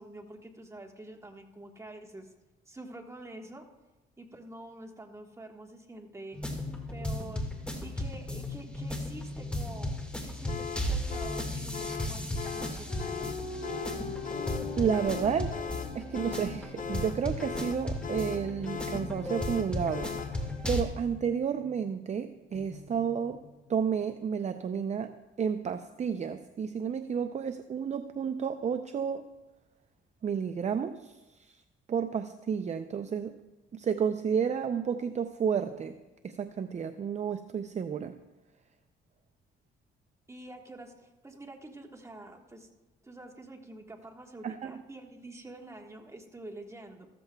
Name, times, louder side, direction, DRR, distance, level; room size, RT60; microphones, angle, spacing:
voice 1, 0.0-2.3 2.7-3.6 4.2-6.4 6.9-7.5 7.8-13.4 40.3-42.7 43.0-47.1, right 2 dB, 15° right, 3 dB, 1.4 m, -47 dB
sound 1, 6.3-20.8, left 1 dB, 5° left, 1.8 m, -36 dB
sound 2, 10.5-20.4, left 7 dB, 40° left, 0.7 m, -39 dB
sound 3, 12.9-16.6 18.0-21.7 22.5-23.8, left 4 dB, 75° left, 3.2 m, -43 dB
voice 2, 14.8-15.6 15.9-20.4 20.7-23.4 23.7-29.2 30.2-31.6 31.9-33.4 33.7-35.9 36.2-38.2 44.4-44.8, right 7 dB, 35° right, 9 dB, 0.5 m, -31 dB
14.5 x 13.5 x 2.3 m, 1.1 s
cardioid pair, 90°, 20 cm